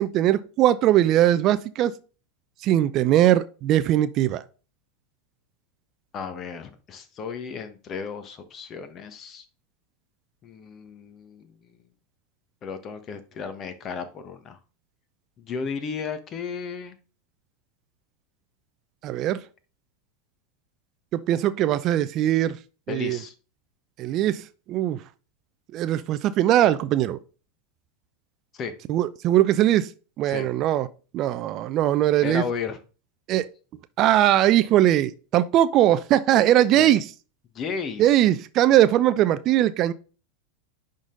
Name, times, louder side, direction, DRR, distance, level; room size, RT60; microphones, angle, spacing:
voice 1, 0.0-1.9 2.6-4.4 19.0-19.4 21.1-22.6 22.9-23.2 24.0-25.0 25.7-27.2 28.9-29.9 30.2-30.9 31.1-32.4 33.3-33.5 34.0-37.0 38.0-39.9, right 12 dB, 40° right, 0.5 m, -20 dB
voice 2, 6.1-9.4 10.4-11.8 12.6-14.6 15.4-16.9 22.9-23.3 28.5-28.7 30.2-30.5 32.2-32.8 36.8-36.9 37.5-38.2, left 6 dB, 35° left, 1.4 m, -34 dB
10.5 x 4.0 x 3.9 m
figure-of-eight pair, 85°, 0 cm